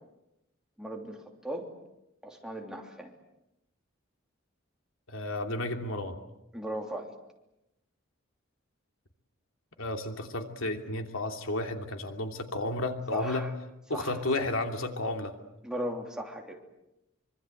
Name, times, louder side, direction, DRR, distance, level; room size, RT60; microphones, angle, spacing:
voice 1, 0.8-1.7 2.2-3.1 6.5-7.1 13.1-13.5 13.9-14.2 15.6-16.6, equal, 5° right, 1 dB, 3.1 m, -37 dB
voice 2, 5.1-6.2 9.8-13.5 13.9-15.4, left 2 dB, 85° left, 5 dB, 2.9 m, -32 dB
25.5 x 25.0 x 7.9 m, 0.89 s
head